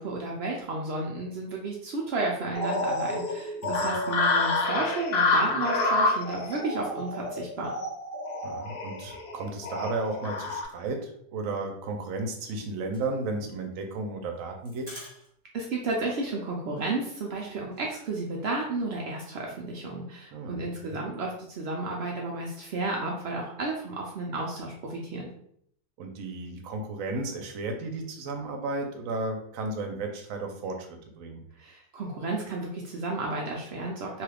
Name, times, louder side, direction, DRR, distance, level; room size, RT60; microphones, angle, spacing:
voice 1, 0.0-7.8 15.5-25.3 31.6-34.2, right 2 dB, 85° right, -1 dB, 0.5 m, -32 dB
sound 1, 2.5-10.6, left 2 dB, 70° left, 0.6 m, -28 dB
voice 2, 3.6-3.9 8.4-14.9 20.3-21.0 26.0-31.4, right 3 dB, 65° right, 3 dB, 0.9 m, -34 dB
sound 2, 12.8-15.7 15.9-16.0 16.3-16.5 16.8-17.9, equal, 20° right, 1.0 m, -49 dB
2.9 x 2.3 x 3.3 m, 0.68 s
omnidirectional pair, 1.7 m